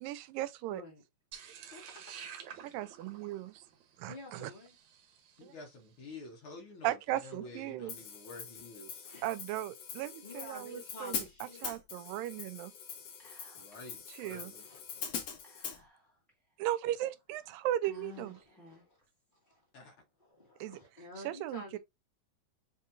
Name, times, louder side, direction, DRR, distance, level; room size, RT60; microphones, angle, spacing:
voice 1, 0.0-0.8 2.6-3.5 4.0-4.5 5.4-5.5 6.8-7.9 9.2-12.7 14.2-14.5 16.6-18.4 20.6-20.8 21.2-21.8, right 14 dB, 90° right, 2.3 m, -37 dB
voice 2, 0.7-1.0 4.1-4.7 9.0-9.3 10.2-11.7 13.5-13.6 14.3-15.0 18.2-18.9 19.5-19.6 20.3-21.8, left 2 dB, 45° left, 0.6 m, -50 dB
sound 1, 1.3-5.6, right 8 dB, 65° right, 2.0 m, -50 dB
voice 3, 1.5-1.8 5.4-9.1 13.6-14.7 19.7-20.0, left 2 dB, 85° left, 1.1 m, -49 dB
Hi-hat, 7.9-15.8, left 7 dB, 65° left, 1.8 m, -43 dB
Whispering, 13.2-13.9 14.2-14.3 15.4-16.3 16.9-17.0 17.8-19.0, left 3 dB, ahead, 0.6 m, -54 dB
7.0 x 2.8 x 2.5 m
omnidirectional pair, 3.9 m